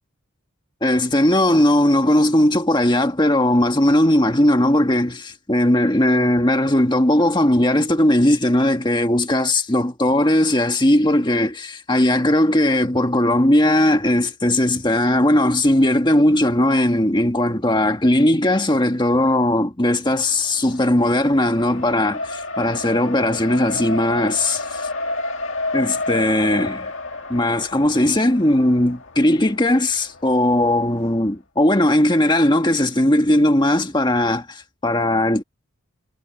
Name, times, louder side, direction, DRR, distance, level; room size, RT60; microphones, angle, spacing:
voice 1, 0.8-24.8 25.7-26.9 27.3-35.4, left 1 dB, 20° left, 1.6 m, -18 dB
Race car auto racing, 20.1-31.1, left 2 dB, 60° left, 2.0 m, -31 dB
head